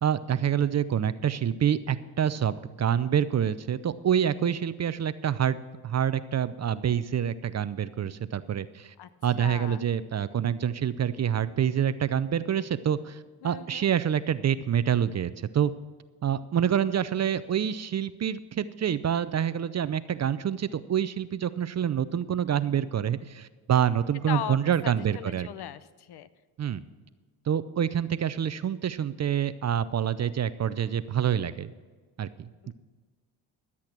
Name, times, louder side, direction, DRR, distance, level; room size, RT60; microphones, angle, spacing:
voice 1, 0.0-5.6 5.8-8.9 9.2-15.7 16.2-25.5 26.6-26.8 27.5-31.7 32.2-32.7, right 9 dB, 35° right, 14 dB, 0.6 m, -27 dB
voice 2, 9.4-9.8 13.4-13.9 24.3-24.6 24.8-26.3 32.6-32.7, left 10 dB, 55° left, 15 dB, 0.8 m, -37 dB
13.0 x 8.5 x 6.0 m, 1.4 s
supercardioid pair, 70°, 47 cm